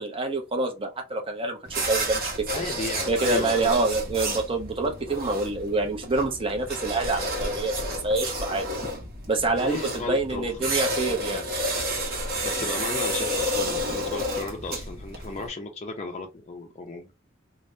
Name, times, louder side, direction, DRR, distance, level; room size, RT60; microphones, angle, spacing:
voice 1, 0.0-2.5 3.1-8.7 9.3-11.5, right 2 dB, 25° right, 0.7 m, -26 dB
sound 1, 1.6-15.5, equal, 50° right, 1.1 m, -30 dB
voice 2, 2.5-3.7 8.8-8.9 9.5-11.5 12.4-17.1, left 3 dB, 35° left, 0.5 m, -35 dB
3.3 x 2.1 x 2.6 m
head